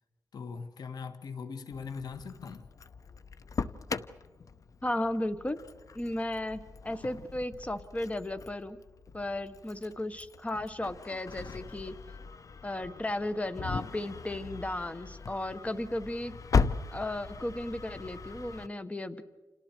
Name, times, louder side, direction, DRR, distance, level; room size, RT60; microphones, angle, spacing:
voice 1, 0.3-2.7, left 5 dB, 80° left, 1.5 m, -40 dB
Engine starting, 1.7-18.7, left 5 dB, 55° left, 0.8 m, -38 dB
voice 2, 4.8-5.6 5.9-8.8 9.1-11.9 12.6-16.3 16.9-19.2, left 1 dB, 20° left, 1.4 m, -35 dB
30.0 x 28.0 x 4.6 m
cardioid pair, 75°, 7 cm